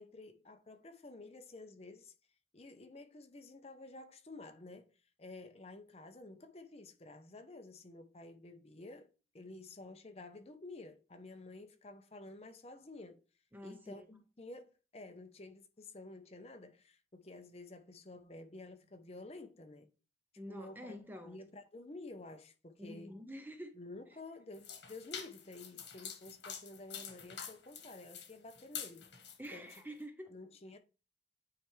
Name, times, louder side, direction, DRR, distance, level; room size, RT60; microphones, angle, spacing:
voice 1, 0.0-2.1 2.5-4.9 5.2-9.1 9.3-13.2 13.6-19.9 20.5-21.0 21.2-23.2 23.7-29.1 29.5-29.7 30.3-30.8, left 2 dB, 35° left, 0.8 m, -51 dB
voice 2, 13.5-14.1 20.4-21.4 22.8-23.7 29.4-30.3, equal, 10° right, 0.7 m, -47 dB
sound 1, 24.5-29.8, left 7 dB, 80° left, 1.6 m, -47 dB
9.1 x 3.4 x 3.3 m
head